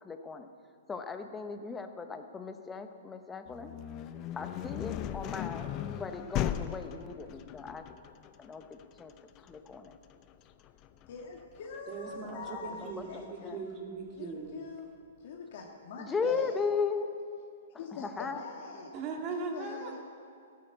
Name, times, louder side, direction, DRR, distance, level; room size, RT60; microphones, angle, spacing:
voice 1, 0.0-0.5 0.9-3.7 4.4-5.7 6.0-7.8 8.4-9.1 9.4-9.9 12.2-13.6 16.0-17.1 18.0-18.4, left 5 dB, 10° left, 7 dB, 0.8 m, -37 dB
sound 1, 3.5-13.2, left 11 dB, 30° left, 0.5 m, -38 dB
voice 2, 11.1-13.7 14.2-14.9 15.2-16.6 17.8-18.9 19.3-20.0, left 5 dB, 55° left, 0 dB, 1.6 m, -43 dB
voice 3, 11.9-14.6 18.9-20.0, right 6 dB, 30° right, 1 dB, 2.1 m, -40 dB
15.0 x 9.4 x 7.9 m, 2.3 s
hypercardioid pair, 155°, 0 cm